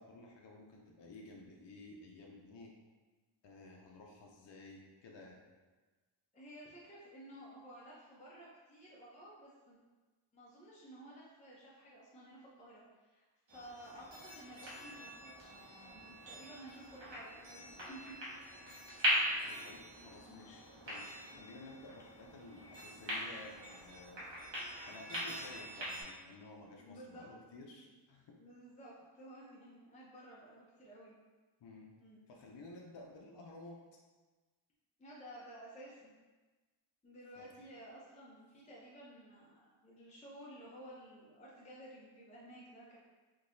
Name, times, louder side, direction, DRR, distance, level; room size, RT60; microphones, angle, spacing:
voice 1, 0.0-2.7 3.4-5.4 19.4-24.2 24.9-28.2 31.6-31.9 32.3-33.8 37.4-37.6, left 2 dB, 65° left, -1 dB, 0.6 m, -53 dB
voice 2, 6.3-9.8 10.3-13.2 13.5-18.1 26.8-27.3 27.7-27.9 28.4-31.1 32.0-32.2 35.0-36.1 37.0-43.0, right 1 dB, 15° left, -6 dB, 0.6 m, -54 dB
sound 1, 13.5-26.0, equal, 70° right, 1.3 m, -41 dB
3.7 x 2.8 x 2.6 m, 1.3 s
wide cardioid pair, 95°, 47 cm